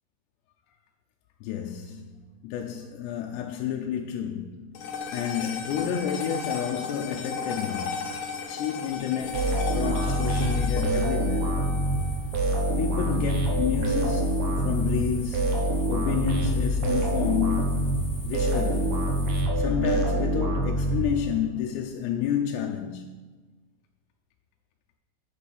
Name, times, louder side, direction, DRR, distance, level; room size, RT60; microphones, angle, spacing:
voice 1, 1.4-4.8 5.1-8.1 8.5-11.6 12.8-15.6 15.9-17.9 18.2-19.0 19.6-23.1, left 8 dB, 90° left, 2.8 m, -30 dB
sound 1, 4.8-13.3, left 5 dB, 65° left, 2.3 m, -35 dB
sound 2, 9.2-19.4, left 2 dB, 45° left, 2.8 m, -42 dB
sound 3, 9.3-21.6, right 1 dB, 75° right, 3.2 m, -26 dB
8.5 x 6.9 x 5.2 m
omnidirectional pair, 4.8 m